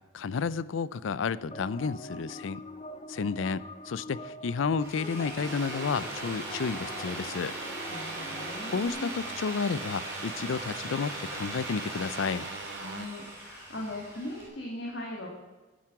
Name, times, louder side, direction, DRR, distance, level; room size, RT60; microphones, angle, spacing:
voice 1, 0.1-2.6 3.1-7.5 8.7-12.5, left 5 dB, 85° left, 18 dB, 0.4 m, -31 dB
sound 1, 1.5-8.9, left 2 dB, 30° left, 0.6 m, -44 dB
Drill, 4.7-14.5, right 1 dB, 10° right, 3.9 m, -40 dB
sound 2, 5.4-13.1, right 8 dB, 70° right, 0.3 m, -43 dB
voice 2, 7.9-9.1 12.7-15.3, left 1 dB, 70° left, -2 dB, 1.9 m, -39 dB
11.0 x 9.2 x 5.9 m, 1.3 s
head